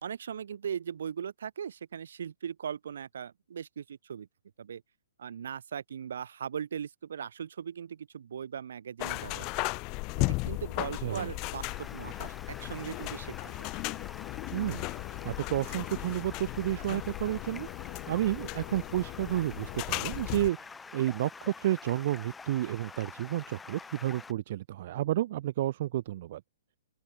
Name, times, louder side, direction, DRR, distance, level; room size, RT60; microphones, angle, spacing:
voice 1, 0.0-4.3 4.6-4.8 5.2-9.5 10.3-13.7, right 8 dB, 70° right, 1.7 m, -39 dB
sound 1, 9.0-20.5, left 26 dB, 25° left, 1.1 m, -36 dB
Stream, 11.6-24.3, left 4 dB, 5° left, 5.1 m, -47 dB
voice 2, 14.5-14.8 15.2-17.7 18.1-20.6 20.9-26.4, right 14 dB, 45° right, 0.8 m, -31 dB
open air
hypercardioid pair, 155°, 0 cm